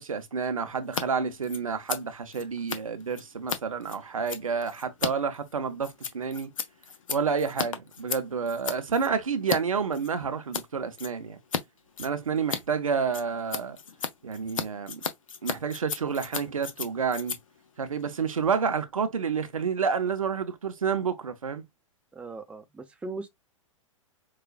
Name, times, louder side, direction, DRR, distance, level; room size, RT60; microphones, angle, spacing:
voice 1, 0.0-6.5 7.1-11.4 12.0-13.8 14.2-15.0 15.4-17.4 17.8-21.6, right 6 dB, 85° right, 0.7 m, -29 dB
Scissors, 0.8-1.0 1.3-9.6 9.9-10.7 11.0-11.6 11.9-18.7, left 7 dB, 75° left, 0.7 m, -35 dB
voice 2, 22.1-23.3, right 3 dB, 5° right, 0.6 m, -39 dB
4.8 x 2.4 x 2.3 m
figure-of-eight pair, 105°, 17 cm